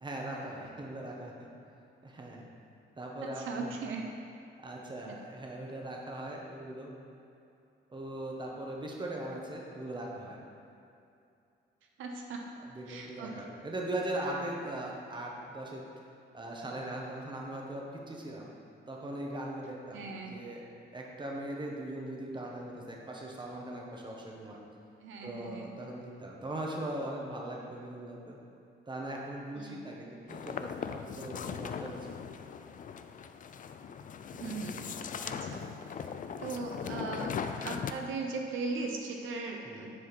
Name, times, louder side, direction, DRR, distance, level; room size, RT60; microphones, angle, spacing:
voice 1, 0.0-1.5 2.0-2.5 3.0-3.7 4.6-6.9 7.9-10.4 12.7-15.8 16.3-18.5 18.9-20.6 20.9-24.6 25.2-28.4 28.9-32.2 34.6-35.0 35.5-35.8 39.6-39.9, right 1 dB, 25° right, -1 dB, 1.4 m, -40 dB
voice 2, 3.2-4.1 5.0-5.2 12.0-12.4 12.9-13.3 19.9-20.4 25.0-25.8 29.6-29.8 34.3-34.8 35.2-35.6 36.0-36.1 36.4-39.9, right 3 dB, 80° right, 1 dB, 0.8 m, -38 dB
sound 1, 30.3-37.9, left 7 dB, 40° left, 0.4 m, -39 dB
10.0 x 4.7 x 4.6 m, 2.6 s
cardioid pair, 90°, 20 cm